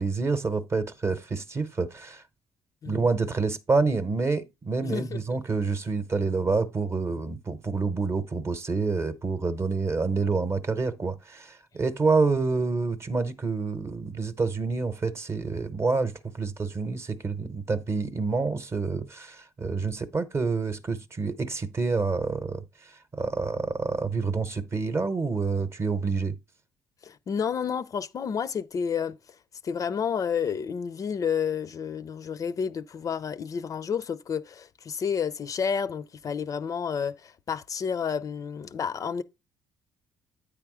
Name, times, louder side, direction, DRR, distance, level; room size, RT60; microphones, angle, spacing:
voice 1, 0.0-2.2 2.9-26.4, right 4 dB, 30° right, 0.8 m, -28 dB
voice 2, 4.8-5.2 27.0-29.2 29.6-39.2, left 7 dB, 40° left, 0.4 m, -30 dB
8.8 x 3.4 x 4.8 m
supercardioid pair, 80°, 8 cm